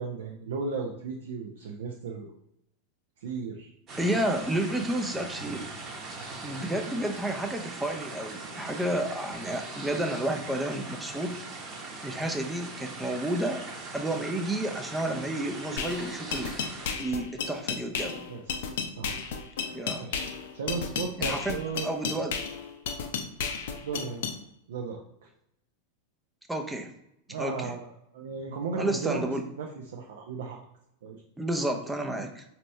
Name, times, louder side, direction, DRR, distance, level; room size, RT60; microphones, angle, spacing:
voice 1, 0.0-2.3 3.2-3.7 18.3-19.2 20.0-21.9 23.8-24.3 24.7-25.3 27.3-29.3 29.6-30.6 31.0-31.2, right 4 dB, 60° right, 0 dB, 0.6 m, -35 dB
sound 1, 3.9-16.9, right 3 dB, 30° right, 1.1 m, -40 dB
voice 2, 4.0-5.7 6.4-11.4 12.0-13.6 13.9-16.6 17.0-18.3 19.7-20.1 21.2-22.4 26.5-26.9 27.4-27.7 28.8-29.4 31.4-32.4, right 1 dB, 5° right, 5 dB, 0.7 m, -31 dB
sound 2, 15.8-24.4, left 6 dB, 55° left, 0.6 m, -33 dB
5.2 x 2.8 x 3.3 m, 0.81 s
figure-of-eight pair, 90°, 0 cm